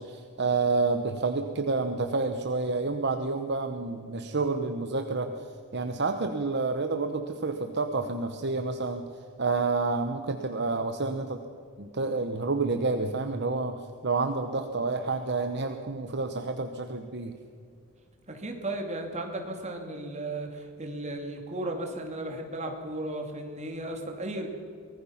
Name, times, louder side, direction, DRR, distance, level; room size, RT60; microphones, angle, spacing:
voice 1, 0.0-5.3 5.7-9.0 9.4-11.4 11.8-17.3, right 3 dB, 50° right, 7 dB, 1.0 m, -29 dB
voice 2, 18.3-24.5, right 1 dB, 35° right, 2 dB, 2.7 m, -35 dB
24.0 x 19.0 x 5.8 m, 2.4 s
head